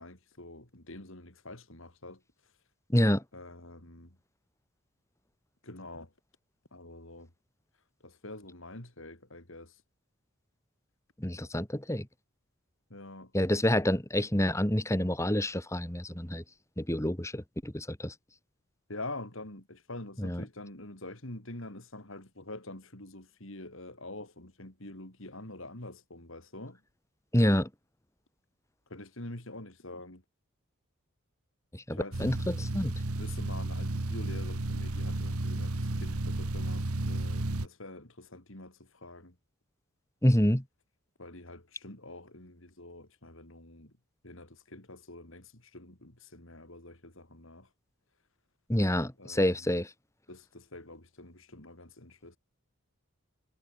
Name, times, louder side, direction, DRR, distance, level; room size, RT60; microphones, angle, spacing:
voice 1, 0.0-2.2 3.3-4.2 5.6-6.1 6.7-7.3 8.0-9.7 12.9-13.3 18.9-26.8 28.9-30.2 31.9-32.2 33.2-39.3 41.2-43.9 44.2-47.7 49.2-49.6 50.3-52.4, left 2 dB, 65° left, 4.0 m, -46 dB
voice 2, 2.9-3.2 11.2-12.1 13.3-16.4 16.8-18.1 20.2-20.4 27.3-27.7 31.7-32.9 40.2-40.6 48.7-49.9, left 1 dB, 15° left, 1.7 m, -27 dB
sound 1, 32.1-37.7, right 2 dB, 85° right, 1.6 m, -33 dB
head